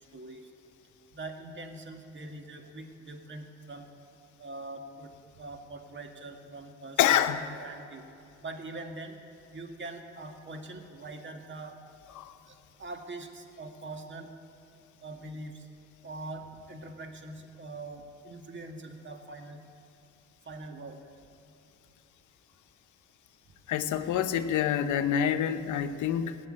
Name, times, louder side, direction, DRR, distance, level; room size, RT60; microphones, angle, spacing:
voice 1, 0.1-0.5 1.1-3.9 4.4-5.1 5.4-7.2 7.6-8.0 8.4-9.2 9.5-11.8 12.5-14.3 15.0-15.7 16.0-19.6 20.4-21.0, right 2 dB, 40° right, 4 dB, 1.7 m, -43 dB
voice 2, 7.0-7.6 12.2-12.3 23.7-26.4, left 9 dB, 80° left, 10 dB, 0.8 m, -27 dB
16.5 x 7.2 x 9.8 m, 2.7 s
cardioid pair, 90°, 30 cm